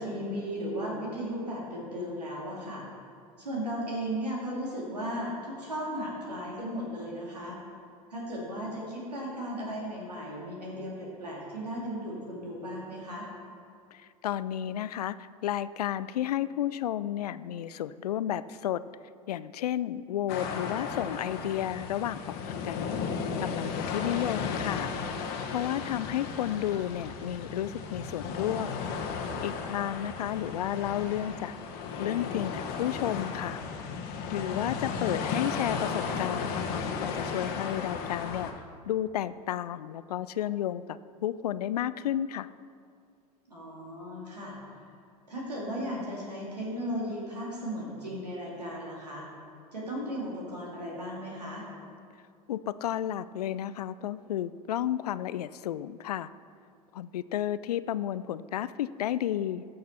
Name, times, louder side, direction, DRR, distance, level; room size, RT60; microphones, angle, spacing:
voice 1, 0.0-2.8 3.4-7.6 8.1-13.3 37.9-38.4 43.5-44.5 45.3-49.2 49.7-51.6, equal, 90° right, -4 dB, 2.9 m, -36 dB
voice 2, 13.9-18.8 19.3-22.9 23.4-24.9 25.5-28.8 29.4-31.5 32.0-33.6 34.3-38.5 38.9-42.5 52.5-56.3 56.9-59.6, left 11 dB, 75° left, 16 dB, 0.4 m, -32 dB
sound 1, 20.3-38.5, left 5 dB, 50° left, 1.3 m, -35 dB
15.0 x 6.6 x 4.3 m, 2.3 s
hypercardioid pair, 80°, 20 cm